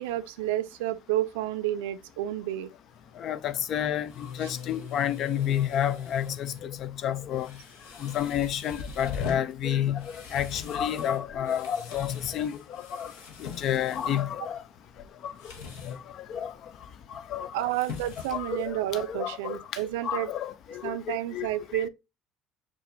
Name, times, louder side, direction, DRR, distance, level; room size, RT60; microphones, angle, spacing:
voice 1, 0.0-2.7 4.4-4.5 17.5-20.3 20.8-21.9, right 14 dB, 85° right, 0.3 m, -30 dB
sound 1, 2.9-19.1, left 6 dB, 75° left, 0.9 m, -42 dB
voice 2, 3.2-7.5 8.0-13.1 13.4-14.6 15.2-15.3 15.8-16.5 17.1-17.7 18.3-19.6 20.0-21.5 21.7-21.8, left 10 dB, 55° left, 0.4 m, -30 dB
6.5 x 2.5 x 2.6 m
supercardioid pair, 80°, 0 cm